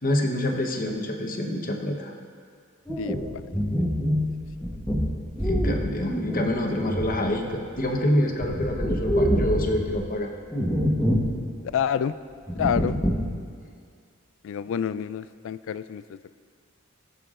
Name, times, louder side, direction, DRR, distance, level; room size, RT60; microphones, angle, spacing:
voice 1, 0.0-2.1 5.4-10.3 12.8-13.0, left 1 dB, 45° left, 2 dB, 1.0 m, -27 dB
sound 1, 2.9-7.9 8.2-10.0 10.5-11.4 11.6-11.7 12.5-13.4, equal, 5° left, 1.0 m, -26 dB
voice 2, 11.7-12.1 12.6-12.9 14.4-16.4, left 8 dB, 65° left, 14 dB, 0.3 m, -28 dB
19.5 x 6.8 x 2.5 m, 2.1 s
head